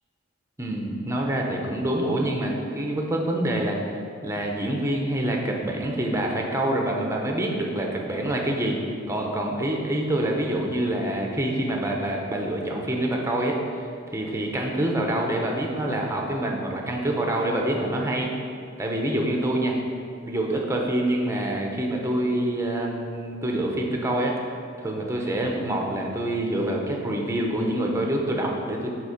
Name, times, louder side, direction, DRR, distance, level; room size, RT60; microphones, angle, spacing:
voice 1, 0.6-3.8 4.2-8.8 9.1-18.3 18.8-19.7 20.2-24.3 24.8-28.9, right 1 dB, 15° right, 0 dB, 0.7 m, -26 dB
8.0 x 3.7 x 5.0 m, 2.4 s
head